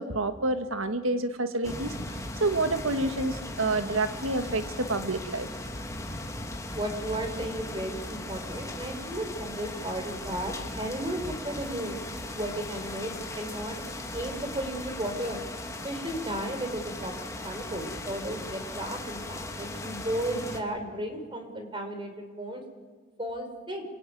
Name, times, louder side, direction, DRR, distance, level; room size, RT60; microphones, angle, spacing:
voice 1, 0.0-5.5, right 2 dB, 85° right, 8 dB, 1.8 m, -29 dB
sound 1, 1.6-20.6, left 2 dB, 15° left, 2.6 m, -38 dB
voice 2, 6.7-12.0 12.3-13.8 14.1-15.4 15.8-17.1 17.4-22.6 23.2-23.8, right 1 dB, 25° right, 6 dB, 4.7 m, -34 dB
27.0 x 22.5 x 9.5 m, 1.5 s
head